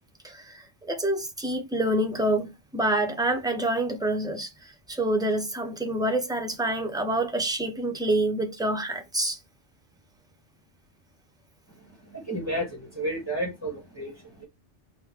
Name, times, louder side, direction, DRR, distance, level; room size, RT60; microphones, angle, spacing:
voice 1, 0.2-4.5 4.9-9.4, right 1 dB, 5° right, 0.3 m, -27 dB
voice 2, 11.9-14.5, right 1 dB, 15° left, 2.7 m, -32 dB
4.8 x 2.2 x 3.5 m
omnidirectional pair, 1.2 m